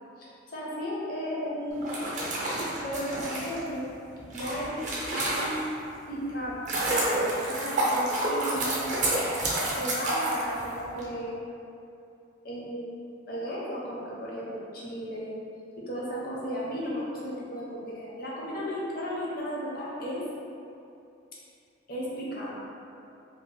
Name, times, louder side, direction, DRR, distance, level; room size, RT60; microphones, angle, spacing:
voice 1, 0.2-2.3 2.8-3.8 4.3-4.8 5.1-5.6 6.1-9.1 9.8-11.5 12.4-15.4 15.8-20.2 21.9-22.6, equal, 50° left, -6 dB, 0.6 m, -35 dB
sound 1, 1.7-5.9 6.3-11.0, right 1 dB, 40° right, 0.5 m, -29 dB
2.7 x 2.4 x 3.1 m, 2.6 s
head